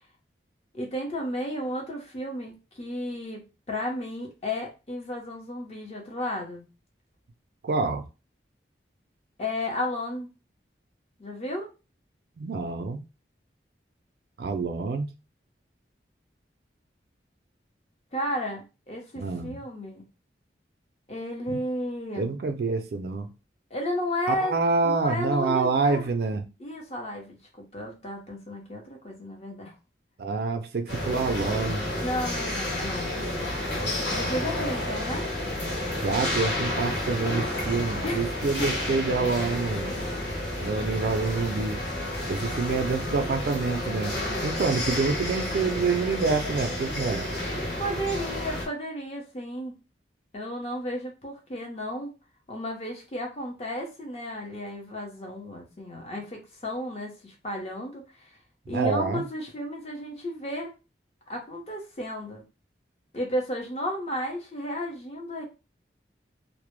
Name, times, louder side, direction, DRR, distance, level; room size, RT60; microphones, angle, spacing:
voice 1, 0.7-3.4 3.7-6.6 9.4-10.3 11.2-11.7 18.1-20.0 21.1-22.3 23.7-24.6 24.8-26.1 26.6-29.7 31.9-33.2 33.8-35.3 38.0-38.3 38.6-38.7 47.8-49.7 50.3-52.1 52.5-58.3 58.7-60.7 61.3-62.4 63.1-65.4, left 1 dB, 35° left, 0.6 m, -33 dB
voice 2, 7.6-8.0 12.4-13.0 14.4-15.1 19.2-19.5 21.5-21.6 22.2-23.3 24.3-26.4 30.2-31.8 36.0-39.9 40.6-41.8 42.3-44.2 44.4-47.3 58.7-59.2, right 4 dB, 60° right, 0.3 m, -27 dB
sound 1, 30.9-48.7, left 1 dB, 75° left, 0.8 m, -30 dB
2.0 x 2.0 x 3.0 m
head